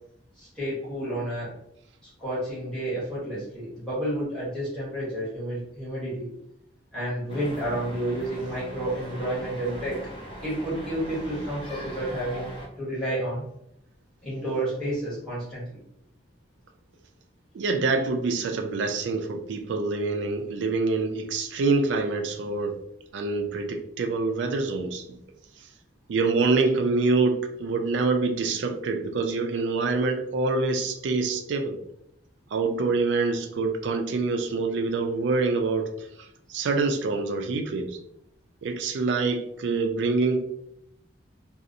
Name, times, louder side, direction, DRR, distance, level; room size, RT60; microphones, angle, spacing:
voice 1, 0.4-1.5 2.2-6.3 6.9-10.0 10.4-12.5 12.8-13.4 14.2-15.8, right 1 dB, 5° left, -10 dB, 0.9 m, -30 dB
sound 1, 7.3-12.7, right 1 dB, 25° left, 0.4 m, -40 dB
voice 2, 17.5-22.8 23.1-25.2 26.1-31.8 32.5-38.0 38.6-40.4, right 3 dB, 70° right, 5 dB, 0.3 m, -26 dB
2.6 x 2.0 x 2.5 m, 0.75 s
head